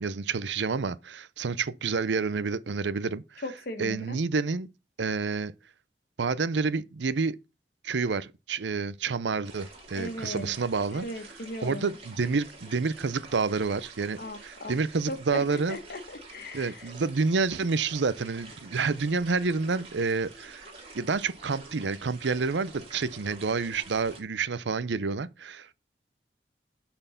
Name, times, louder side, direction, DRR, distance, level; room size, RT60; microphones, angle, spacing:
voice 1, 0.0-3.4 3.8-4.7 5.0-5.5 6.2-7.4 7.8-11.1 11.6-15.8 16.5-20.7 20.9-25.7, right 4 dB, 90° right, 0.6 m, -29 dB
voice 2, 3.4-4.2 9.9-10.5 10.9-12.0 14.2-14.7 15.1-15.4 15.7-16.9, left 1 dB, 60° left, 1.5 m, -38 dB
sound 1, 9.4-24.2, right 3 dB, 35° right, 2.8 m, -48 dB
8.8 x 4.4 x 5.7 m
head